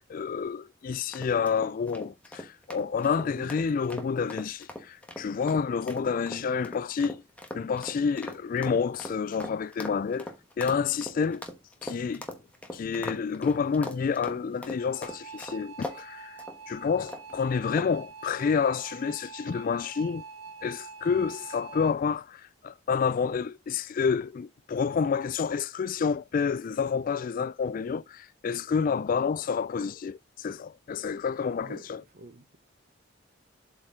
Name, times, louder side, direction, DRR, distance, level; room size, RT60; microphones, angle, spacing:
voice 1, 0.0-7.2 7.5-10.3 10.6-11.4 11.8-12.2 12.7-20.2 20.6-32.0, left 6 dB, 45° left, 0.3 m, -29 dB
sound 1, 1.1-16.0 16.4-16.6 17.1-17.4 17.8-18.1, left 1 dB, 5° left, 1.2 m, -41 dB
voice 2, 3.2-3.5 6.3-6.5 12.1-12.2 31.6-32.6, right 2 dB, 45° right, 0.7 m, -47 dB
sound 2, 14.8-22.0, right 4 dB, 85° right, 1.5 m, -45 dB
7.9 x 4.3 x 3.6 m
head